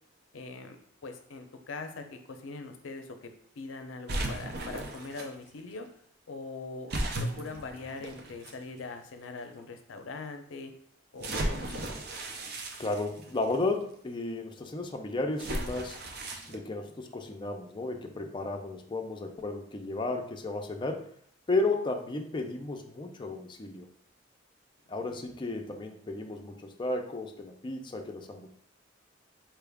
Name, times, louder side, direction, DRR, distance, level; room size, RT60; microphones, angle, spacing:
voice 1, 0.3-0.8 1.0-5.9 6.3-10.7 11.1-11.9 25.0-25.2, left 3 dB, 85° left, 6 dB, 0.5 m, -42 dB
sound 1, 4.1-5.3 6.9-8.5 9.3-9.4 11.2-13.6 15.4-16.6, right 1 dB, 55° right, 0.6 m, -35 dB
voice 2, 12.8-16.0 16.5-21.1 21.5-23.9 24.9-28.5, left 2 dB, 25° left, 3 dB, 0.4 m, -33 dB
4.4 x 2.3 x 3.4 m, 0.62 s
head